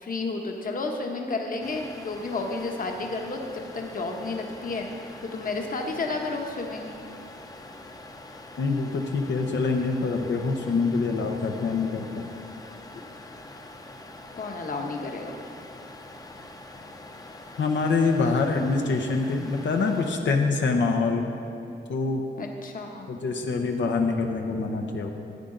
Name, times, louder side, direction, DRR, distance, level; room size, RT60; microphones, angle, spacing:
voice 1, 0.0-4.9 5.2-6.9 14.3-15.4 22.4-23.1, left 3 dB, 50° left, 2 dB, 1.1 m, -31 dB
sound 1, 1.6-20.1, left 2 dB, 20° left, 0.7 m, -44 dB
voice 2, 8.6-12.2 17.6-21.3 21.9-22.2 23.1-25.1, left 4 dB, 85° left, 2 dB, 0.9 m, -25 dB
14.5 x 9.8 x 3.9 m, 2.6 s
wide cardioid pair, 150°, 18 cm